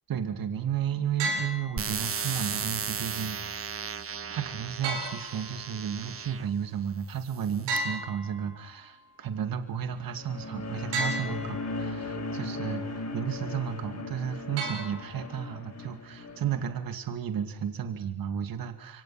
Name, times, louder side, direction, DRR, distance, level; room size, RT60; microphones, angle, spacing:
voice 1, 0.1-4.0 4.3-19.0, right 8 dB, 55° right, 8 dB, 2.4 m, -33 dB
sound 1, 1.2-2.2 4.8-5.9 7.7-8.9 10.9-11.9 14.6-15.5, right 2 dB, 90° right, 7.8 m, -34 dB
sound 2, 1.8-6.5 7.2-7.8, right 6 dB, 35° right, 1.4 m, -35 dB
sound 3, 10.1-16.7, left 2 dB, 40° left, 7.4 m, -37 dB
27.5 x 24.5 x 5.9 m, 0.64 s
cardioid pair, 90°, 40 cm